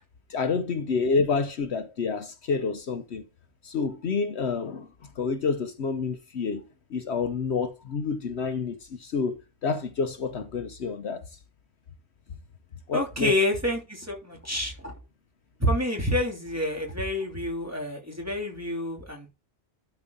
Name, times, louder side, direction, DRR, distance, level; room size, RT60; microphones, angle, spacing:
voice 1, 0.3-3.2 3.6-4.9 5.2-6.6 6.9-11.3 12.9-13.3, left 5 dB, 65° left, 1.1 m, -28 dB
voice 2, 12.9-14.9 15.6-19.3, left 1 dB, 10° right, 3.1 m, -28 dB
12.5 x 4.6 x 4.0 m
omnidirectional pair, 1.2 m